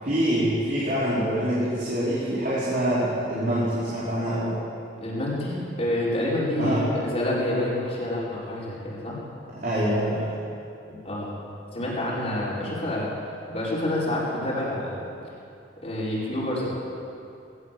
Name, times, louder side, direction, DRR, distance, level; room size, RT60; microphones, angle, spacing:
voice 1, 0.0-4.6 6.6-6.8 9.5-10.3, right 1 dB, 45° right, -9 dB, 4.8 m, -25 dB
voice 2, 5.0-9.2 10.9-11.4 11.7-13.1 13.5-15.0 15.8-16.7, left 1 dB, 30° left, -7 dB, 5.0 m, -28 dB
20.5 x 18.0 x 7.7 m, 2.6 s
head